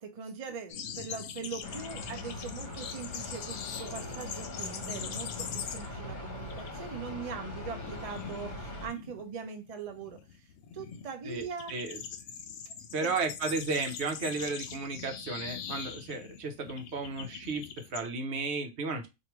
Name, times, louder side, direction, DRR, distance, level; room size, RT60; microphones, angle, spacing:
voice 1, 0.0-10.5 10.7-11.8 13.0-13.1, right 5 dB, 40° right, 0.6 m, -41 dB
sound 1, 0.7-6.1 6.4-6.7 7.0-18.1, left 7 dB, 75° left, 0.9 m, -42 dB
sound 2, 1.6-8.9, left 2 dB, 45° left, 1.0 m, -41 dB
voice 2, 11.2-12.0 12.9-19.1, right 3 dB, 70° right, 1.0 m, -34 dB
4.6 x 2.6 x 2.9 m
omnidirectional pair, 1.2 m